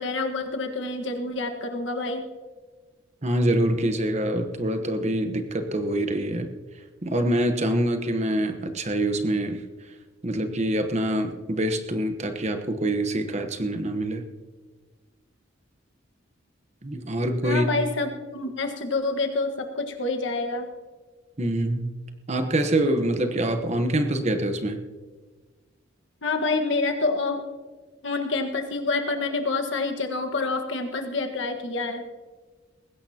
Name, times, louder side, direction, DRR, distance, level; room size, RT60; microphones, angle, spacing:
voice 1, 0.0-2.2 17.4-20.7 26.2-27.4 28.0-32.0, left 3 dB, 70° left, 4 dB, 1.5 m, -27 dB
voice 2, 3.2-6.5 7.0-9.6 10.2-14.2 16.8-17.6 21.4-21.9 22.3-24.8, right 1 dB, 35° right, 7 dB, 1.0 m, -25 dB
20.0 x 16.5 x 2.9 m, 1.4 s
head